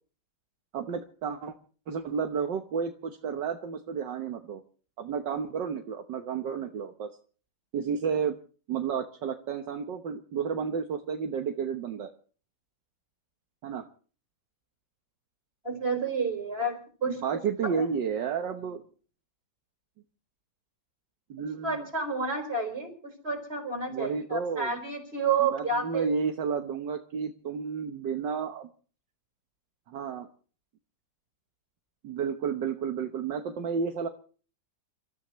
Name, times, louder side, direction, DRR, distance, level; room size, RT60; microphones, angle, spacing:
voice 1, 0.7-1.5 1.9-4.6 5.0-7.1 7.7-8.4 8.7-12.1 13.6-13.8 17.1-18.8 21.3-21.9 23.9-24.7 25.5-28.7 29.9-30.3 32.0-34.1, right 6 dB, 70° right, 5 dB, 1.8 m, -31 dB
voice 2, 15.6-17.9 21.4-26.1, right 4 dB, 30° right, 4 dB, 5.1 m, -30 dB
29.0 x 14.0 x 3.1 m, 0.40 s
omnidirectional pair, 2.0 m